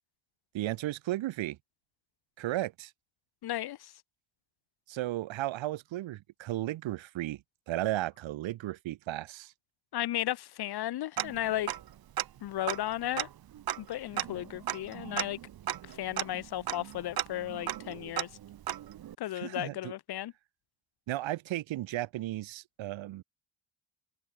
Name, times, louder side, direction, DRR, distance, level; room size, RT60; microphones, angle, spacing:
voice 1, 0.5-1.6 2.4-2.9 4.9-9.5 19.3-19.9 21.1-23.2, right 15 dB, 75° right, 1.7 m, -34 dB
voice 2, 3.4-3.9 9.9-11.7 12.4-13.3 13.8-15.4 15.8-18.3 19.2-20.3, left 13 dB, 55° left, 0.8 m, -34 dB
Tick-tock, 11.2-11.9 12.2-12.3 12.6-19.2, right 11 dB, 50° right, 1.2 m, -36 dB
cardioid pair, 115°, 46 cm